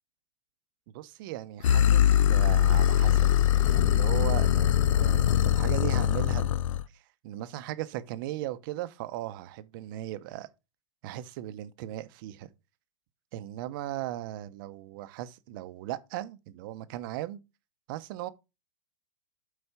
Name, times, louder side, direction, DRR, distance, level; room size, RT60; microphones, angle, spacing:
voice 1, 0.9-6.5 6.9-10.5 11.0-12.5 13.3-17.4 17.9-18.3, right 14 dB, 40° right, 0.8 m, -37 dB
sound 1, 1.6-6.8, left 11 dB, 85° left, 0.4 m, -22 dB
8.1 x 4.3 x 5.7 m
hypercardioid pair, 150°, 16 cm